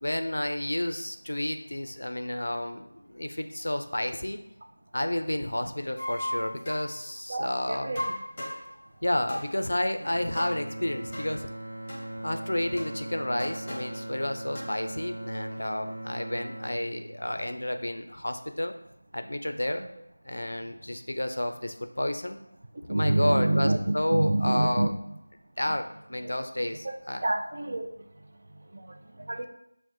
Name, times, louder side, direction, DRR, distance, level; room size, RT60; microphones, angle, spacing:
voice 1, 0.0-4.4 4.9-7.9 9.0-11.5 12.2-18.7 19.1-19.8 20.2-22.4 22.9-24.9 25.6-27.2 29.0-29.1, left 1 dB, 70° left, 7 dB, 0.4 m, -31 dB
sound 1, 6.0-6.9 8.0-8.7 9.3-9.5 10.4-10.6 11.1-11.3 11.9-12.0 12.8-12.9 13.4-14.0 14.5-14.7, left 1 dB, 20° left, 0.8 m, -35 dB
voice 2, 7.3-8.1 22.9-24.9 25.7-25.8 26.2-26.3 26.8-26.9 27.2-27.9 28.7-28.9 29.3-29.5, right 1 dB, 45° right, 5 dB, 0.4 m, -27 dB
Bowed string instrument, 10.0-18.2, right 1 dB, 75° right, 0.8 m, -39 dB
5.9 x 2.1 x 2.8 m, 0.78 s
figure-of-eight pair, 170°, 0 cm